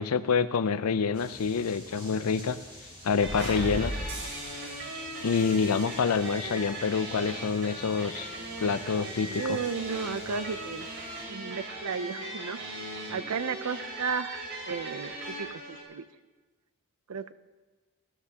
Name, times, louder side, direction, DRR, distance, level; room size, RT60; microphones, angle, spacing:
voice 1, 0.0-2.6 3.0-3.9 5.2-8.3 8.6-9.6, left 5 dB, 85° left, 13 dB, 0.5 m, -27 dB
sound 1, 1.1-11.2, equal, 25° right, 3.6 m, -49 dB
sound 2, 3.2-15.8, right 1 dB, 65° right, 4.0 m, -38 dB
voice 2, 9.3-10.9 11.3-12.6 13.1-14.4 14.7-16.0 17.1-17.3, right 5 dB, 85° right, 13 dB, 0.5 m, -33 dB
19.5 x 13.0 x 2.9 m, 1.3 s
head